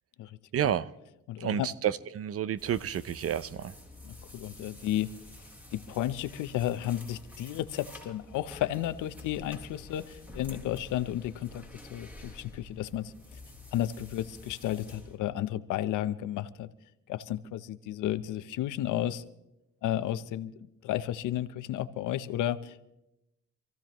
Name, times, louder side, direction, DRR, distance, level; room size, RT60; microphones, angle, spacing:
voice 1, 0.5-0.9 1.4-3.7, right 10 dB, 50° right, 0.6 m, -30 dB
voice 2, 1.3-1.7 4.0-5.1 5.7-11.6 11.9-13.1 13.7-16.7 17.1-19.2 19.8-20.5 20.8-22.8, left 12 dB, 85° left, 0.8 m, -32 dB
sound 1, 2.6-15.2, left 2 dB, 5° right, 3.5 m, -49 dB
27.0 x 15.0 x 3.0 m
cardioid pair, 90°, 30 cm